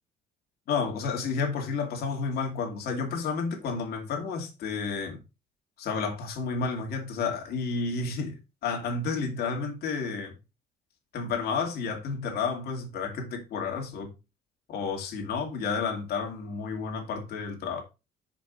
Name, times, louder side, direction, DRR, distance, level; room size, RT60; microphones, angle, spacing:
voice 1, 0.7-5.2 5.8-10.3 11.1-14.1 14.7-17.8, left 5 dB, 70° left, 2.3 m, -31 dB
5.5 x 5.2 x 4.0 m
cardioid pair, 110°, 17 cm